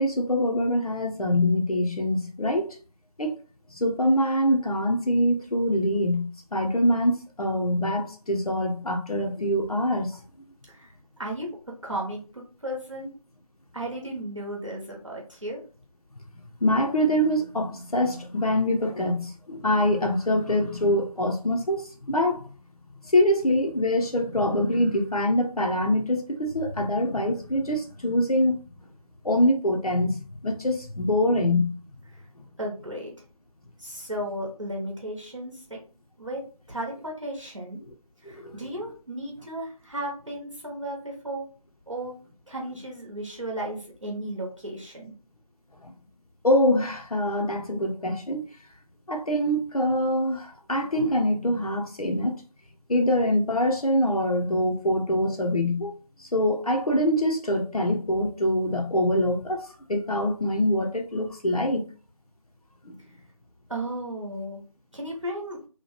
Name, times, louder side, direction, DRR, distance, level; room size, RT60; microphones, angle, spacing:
voice 1, 0.0-2.8 3.2-3.4 3.7-10.2 16.6-22.5 23.1-28.6 29.2-31.7 38.3-38.6 45.8-45.9 46.4-48.4 49.1-52.4 52.9-55.9 56.2-61.9 62.8-62.9, left 1 dB, 70° left, 0.6 m, -24 dB
voice 2, 11.2-11.5 11.8-13.1 13.7-15.6 32.1-32.3 32.6-33.1 33.8-35.8 36.2-36.4 36.7-37.8 38.2-41.4 41.9-42.1 42.5-45.1 63.7-64.7 64.9-65.6, right 1 dB, 55° right, 0.9 m, -34 dB
2.9 x 2.2 x 3.1 m
figure-of-eight pair, 175°, 20 cm